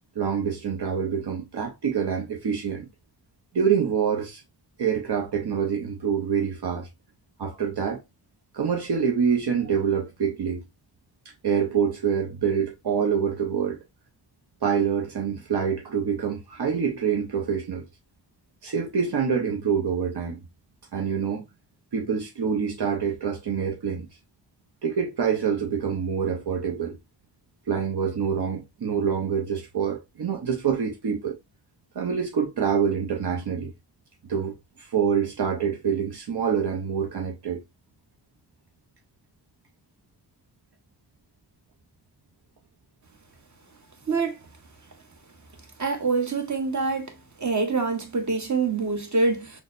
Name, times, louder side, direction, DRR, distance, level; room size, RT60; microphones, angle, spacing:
voice 1, 0.2-2.9 3.5-4.4 4.8-6.9 7.4-8.0 8.5-10.6 11.4-13.8 14.6-17.8 18.6-20.4 20.9-21.4 21.9-24.1 24.8-27.0 27.7-31.4 32.0-33.7 34.3-37.6, right 7 dB, 70° right, 0.7 m, -26 dB
voice 2, 45.8-47.1 47.4-49.5, right 4 dB, 45° right, 1.0 m, -25 dB
6.1 x 2.1 x 2.4 m
wide cardioid pair, 105°, 41 cm